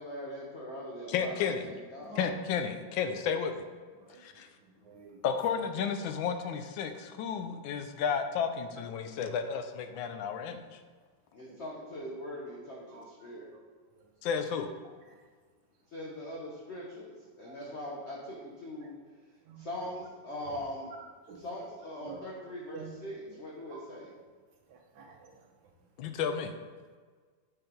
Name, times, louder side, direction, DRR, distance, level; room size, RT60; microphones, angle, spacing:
voice 1, 0.0-2.2 11.3-13.5 15.9-18.9 19.6-20.9 21.4-24.1, left 1 dB, 55° left, -3 dB, 0.8 m, -41 dB
voice 2, 1.1-1.7 2.2-3.6 4.2-4.5 5.2-10.8 14.2-14.7 26.0-26.5, left 6 dB, 80° left, 8 dB, 1.3 m, -32 dB
voice 3, 4.8-5.2 12.9-13.0 17.4-17.5 19.5-19.6 20.4-20.6 21.3-21.4 22.0-22.2 22.7-22.8 23.7-23.8 24.7-25.4, right 7 dB, 85° right, 2 dB, 1.7 m, -48 dB
6.6 x 4.0 x 4.4 m, 1.5 s
omnidirectional pair, 2.1 m